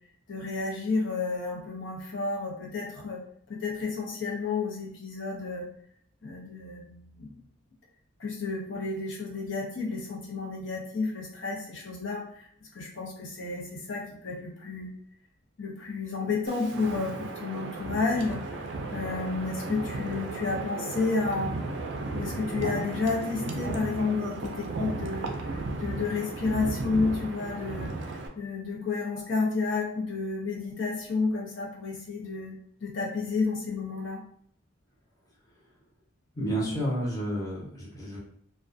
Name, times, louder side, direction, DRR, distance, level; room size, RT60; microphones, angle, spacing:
voice 1, 0.3-3.2 3.5-5.7 6.2-7.3 8.2-14.9 15.6-21.6 22.1-34.2, left 4 dB, 65° left, -2 dB, 0.6 m, -31 dB
Wind, 16.5-28.3, right 3 dB, 60° right, 0.4 m, -35 dB
voice 2, 36.3-38.2, equal, 15° left, -6 dB, 0.7 m, -30 dB
2.3 x 2.2 x 2.5 m, 0.64 s
head